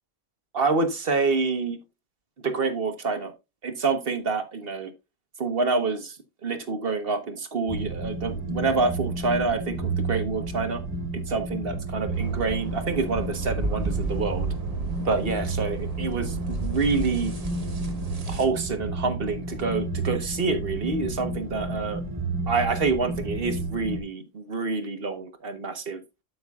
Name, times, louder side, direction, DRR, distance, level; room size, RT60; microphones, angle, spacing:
voice 1, 0.5-1.8 2.4-3.3 3.6-4.9 5.4-6.2 6.4-10.8 11.1-14.5 15.0-17.3 18.3-22.0 22.5-26.0, right 4 dB, 50° right, 7 dB, 1.3 m, -27 dB
sound 1, 7.7-24.0, right 3 dB, 10° right, 0.8 m, -31 dB
sound 2, 12.1-18.5, right 3 dB, 30° right, 1.4 m, -33 dB
12.0 x 5.5 x 2.4 m, 0.25 s
omnidirectional pair, 1.3 m